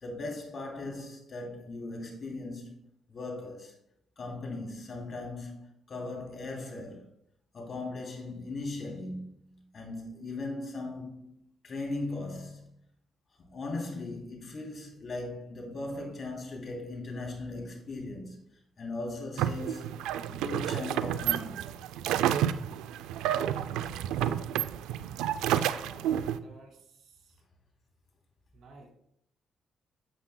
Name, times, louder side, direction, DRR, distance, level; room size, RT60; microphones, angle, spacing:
voice 1, 0.0-3.7 4.2-7.0 7.5-12.7 13.4-18.4 18.8-20.0 20.3-21.7, left 2 dB, 50° left, 2.8 m, -38 dB
sound 1, 19.4-26.4, right 10 dB, 90° right, 0.3 m, -30 dB
voice 2, 25.7-26.1 26.4-27.4 28.5-28.9, right 3 dB, 70° right, 2.3 m, -54 dB
9.5 x 8.3 x 2.2 m
cardioid pair, 70°, 0 cm